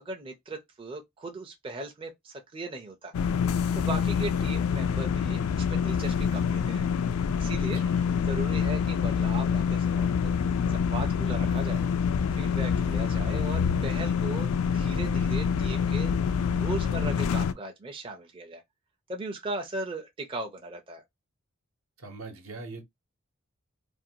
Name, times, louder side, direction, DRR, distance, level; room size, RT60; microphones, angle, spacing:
voice 1, 0.0-3.1 3.7-6.9 7.4-7.8 8.3-11.8 12.3-16.1 16.5-18.6 19.1-21.0, right 2 dB, 25° right, 0.4 m, -38 dB
sound 1, 3.1-17.5, left 6 dB, 85° left, 0.3 m, -26 dB
voice 2, 7.7-8.1 22.0-22.8, right 3 dB, 75° right, 0.9 m, -42 dB
2.5 x 2.2 x 2.7 m
head